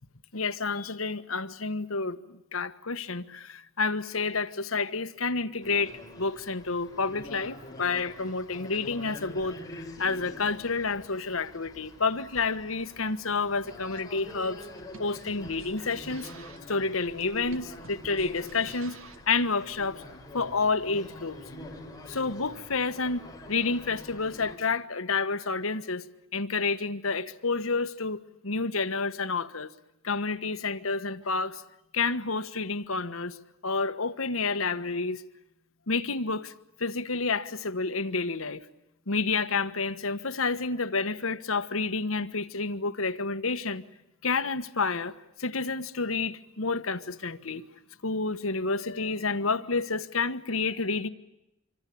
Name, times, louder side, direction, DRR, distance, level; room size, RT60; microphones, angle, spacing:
voice 1, 0.3-14.7 15.0-16.3 16.7-19.0 19.3-20.0 20.3-21.4 22.1-26.0 26.3-29.7 30.0-31.6 31.9-33.4 33.6-35.2 35.9-36.5 36.8-38.6 39.1-43.8 44.2-45.1 45.4-47.6 48.0-51.1, left 4 dB, 80° left, 1.4 m, -29 dB
sound 1, 5.6-24.6, left 1 dB, 20° left, 4.5 m, -46 dB
sound 2, 13.9-19.3, right 3 dB, 75° right, 2.0 m, -51 dB
26.5 x 24.5 x 8.6 m
head